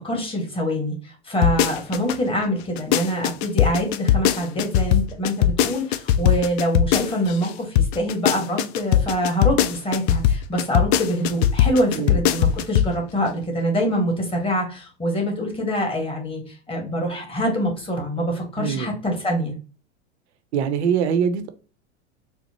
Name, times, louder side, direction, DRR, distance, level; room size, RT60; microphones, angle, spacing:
voice 1, 0.0-19.5, equal, 15° left, 0 dB, 1.5 m, -25 dB
sound 1, 1.4-2.2 2.6-7.5 7.8-12.9 13.3-13.4, left 10 dB, 65° left, 0.5 m, -19 dB
voice 2, 18.6-18.9 20.5-21.5, right 7 dB, 70° right, 10 dB, 0.7 m, -23 dB
4.2 x 2.1 x 2.9 m, 0.36 s
hypercardioid pair, 95°, 35 cm